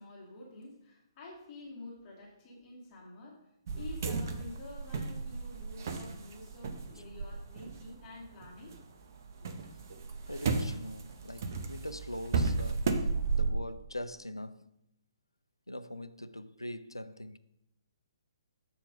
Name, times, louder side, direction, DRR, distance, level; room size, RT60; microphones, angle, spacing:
voice 1, 0.0-3.4 3.7-8.8 9.4-9.5, left 2 dB, 25° left, 1.9 m, -49 dB
sound 1, 3.7-8.8 9.1-13.5, right 4 dB, 45° right, 0.8 m, -34 dB
voice 2, 10.3-12.9 13.3-14.8 15.7-17.4, left 1 dB, 90° left, 0.4 m, -42 dB
7.1 x 4.5 x 5.1 m
figure-of-eight pair, 130°, 2 cm